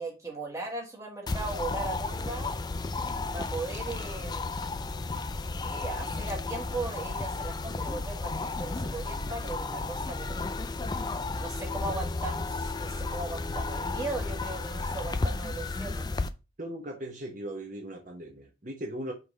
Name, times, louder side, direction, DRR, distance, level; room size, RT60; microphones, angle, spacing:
voice 1, 0.0-2.6 3.3-4.5 5.6-10.5 10.8-16.1, right 3 dB, 15° right, 1.4 m, -38 dB
sound 1, 1.3-16.3, left 3 dB, 20° left, 0.3 m, -33 dB
voice 2, 16.6-19.1, right 1 dB, 40° right, 1.0 m, -38 dB
5.6 x 3.2 x 5.4 m
head